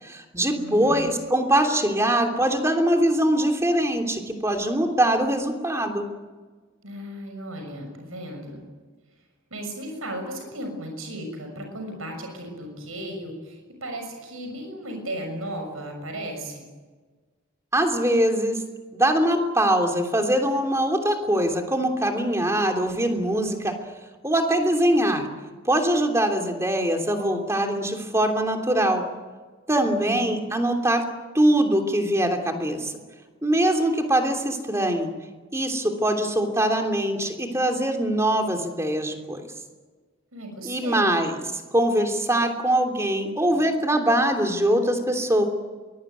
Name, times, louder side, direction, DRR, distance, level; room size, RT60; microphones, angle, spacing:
voice 1, 0.0-6.0 17.7-18.6 18.9-23.7 24.2-25.3 25.6-29.0 29.7-31.0 31.3-32.9 33.4-35.1 35.5-39.5 40.6-41.4 41.7-45.4, right 1 dB, 15° right, 4 dB, 3.1 m, -22 dB
voice 2, 0.6-1.1 6.8-8.6 9.5-16.6 29.8-30.4 40.3-41.2, right 1 dB, 75° right, 4 dB, 6.7 m, -35 dB
23.5 x 21.5 x 9.4 m, 1.4 s
head